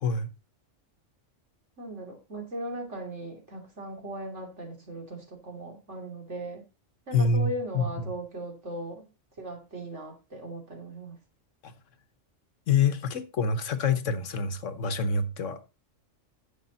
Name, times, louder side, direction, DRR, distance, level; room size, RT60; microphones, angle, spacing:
voice 1, 1.8-6.7 7.1-9.0 9.4-11.2, right 1 dB, 65° right, 3.3 m, -38 dB
voice 2, 7.1-7.9 11.6-11.7 12.7-15.6, left 4 dB, 75° left, 1.4 m, -26 dB
10.5 x 7.3 x 4.1 m
omnidirectional pair, 1.3 m